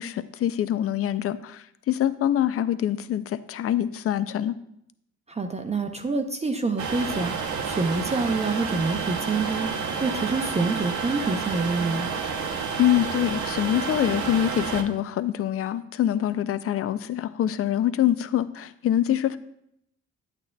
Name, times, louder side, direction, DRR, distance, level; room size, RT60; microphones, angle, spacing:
voice 1, 0.0-4.5 12.8-19.4, left 11 dB, 50° left, 14 dB, 0.5 m, -25 dB
voice 2, 5.3-12.1, right 3 dB, 20° right, 5 dB, 0.6 m, -27 dB
sound 1, 6.8-14.8, right 5 dB, 70° right, 0.9 m, -30 dB
9.7 x 8.5 x 2.3 m, 0.75 s
cardioid pair, 90°, 30 cm